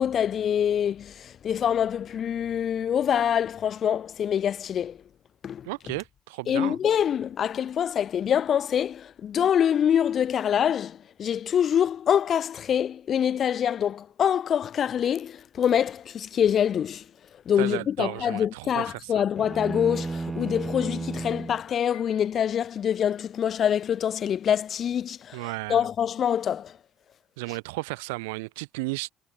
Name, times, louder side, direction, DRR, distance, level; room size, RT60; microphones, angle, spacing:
voice 1, 0.0-5.0 5.4-5.7 6.5-17.1 17.5-26.8, left 9 dB, 50° left, 0.3 m, -25 dB
voice 2, 5.6-6.8 17.6-19.2 25.3-25.9 27.4-29.1, right 25 dB, 85° right, 0.4 m, -34 dB
sound 1, 19.4-21.6, right 3 dB, 20° right, 1.2 m, -33 dB
Piano, 21.9-23.2, left 18 dB, 85° left, 7.0 m, -55 dB
hypercardioid pair, 65°, 0 cm